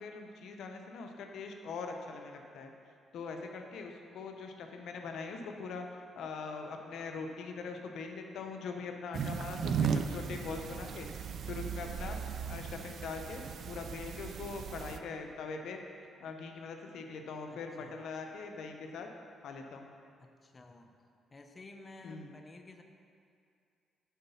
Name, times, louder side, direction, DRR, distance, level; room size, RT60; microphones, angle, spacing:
voice 1, 0.0-2.7 3.1-5.8 6.1-11.1 11.5-13.4 13.7-15.8 16.2-19.1 19.4-19.9 22.0-22.3, left 4 dB, 75° left, 3 dB, 0.7 m, -42 dB
sound 1, 9.1-15.0, right 6 dB, 60° right, 0.4 m, -36 dB
voice 2, 17.5-18.1 20.2-20.9 21.3-22.8, left 3 dB, 30° left, 4 dB, 0.6 m, -53 dB
9.3 x 4.0 x 5.6 m, 2.4 s
cardioid pair, 90°, 0 cm